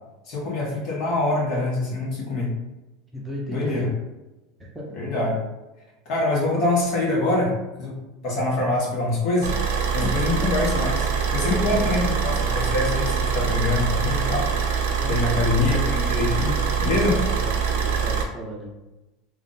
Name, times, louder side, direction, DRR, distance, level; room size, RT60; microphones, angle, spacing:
voice 1, 0.3-2.5 3.5-3.9 4.9-5.4 6.0-8.0 8.2-9.5 9.9-14.5 15.1-17.2, left 2 dB, 50° left, -3 dB, 1.4 m, -24 dB
voice 2, 3.1-3.9 4.7-4.9 11.5-12.0 15.0-15.4 17.1-18.8, equal, 10° right, -3 dB, 0.8 m, -35 dB
Car / Idling, 9.4-18.2, right 6 dB, 80° right, 0.8 m, -24 dB
3.2 x 2.5 x 4.0 m, 1.0 s
supercardioid pair, 140°, 0 cm